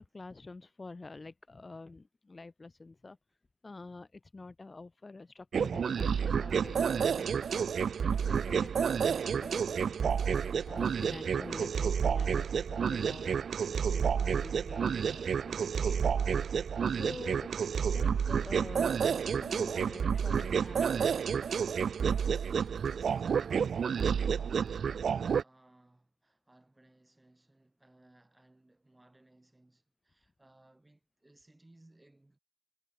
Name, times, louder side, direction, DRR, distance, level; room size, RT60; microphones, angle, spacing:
voice 1, 0.0-3.2 3.6-16.1 16.9-17.5 17.9-21.8, left 3 dB, 30° left, 1.0 m, -48 dB
sound 1, 5.5-25.4, right 7 dB, 70° right, 0.3 m, -30 dB
voice 2, 22.6-32.4, right 2 dB, 15° right, 5.6 m, -64 dB
cardioid pair, 70°, 0 cm